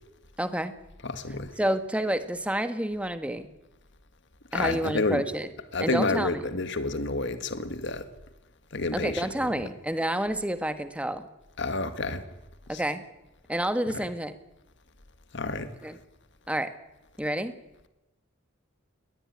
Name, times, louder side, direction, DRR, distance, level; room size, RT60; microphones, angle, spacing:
voice 1, 0.4-0.7 1.6-3.5 4.5-5.5 5.8-6.5 8.9-11.3 12.7-13.0 13.5-14.3 15.8-16.0 16.5-16.7 17.2-17.5, right 1 dB, 5° right, 1.4 m, -29 dB
voice 2, 1.0-1.5 4.5-5.2 5.7-8.1 8.7-9.2 11.6-12.2 15.3-15.7, left 3 dB, 55° left, 1.8 m, -29 dB
21.0 x 19.0 x 9.7 m
head